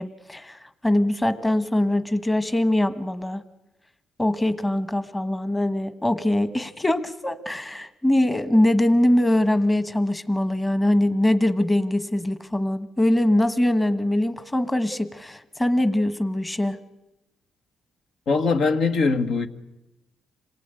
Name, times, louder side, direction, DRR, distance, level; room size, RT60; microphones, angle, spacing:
voice 1, 0.0-3.4 4.2-16.8, left 1 dB, 15° left, 1.3 m, -22 dB
voice 2, 18.3-19.5, left 4 dB, 70° left, 1.7 m, -21 dB
27.0 x 18.5 x 9.1 m
cardioid pair, 90°, 0 cm